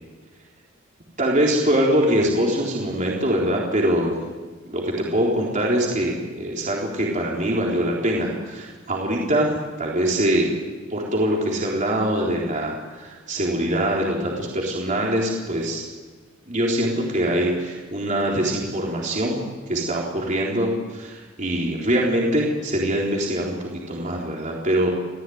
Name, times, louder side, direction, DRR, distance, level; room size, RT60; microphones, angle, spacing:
voice 1, 1.2-4.2 4.7-10.5 10.9-15.9 16.5-19.4 19.7-24.9, right 1 dB, 35° right, -2 dB, 3.9 m, -23 dB
28.0 x 17.0 x 9.5 m, 1.4 s
head